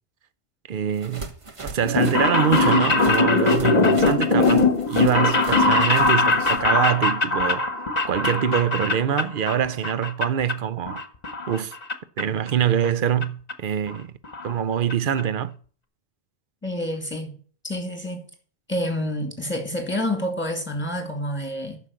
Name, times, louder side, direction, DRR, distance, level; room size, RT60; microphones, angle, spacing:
voice 1, 0.7-1.3 1.6-7.7 8.1-11.0 11.5-11.8 12.2-14.1 14.4-15.5, right 9 dB, 60° right, 0.8 m, -24 dB
sound 1, 0.9-6.6, right 2 dB, 30° right, 1.1 m, -39 dB
sound 2, 1.8-9.6 9.8-10.5 10.9-11.9 12.2-12.3 13.2-13.3 13.5-13.6 13.9-14.0 14.2-14.5 14.9-15.0 15.2-15.3, left 3 dB, 45° left, 1.1 m, -21 dB
voice 2, 16.6-17.3 17.6-18.2 18.7-21.8, left 1 dB, 10° left, 2.3 m, -28 dB
9.6 x 6.4 x 6.5 m
omnidirectional pair, 1.0 m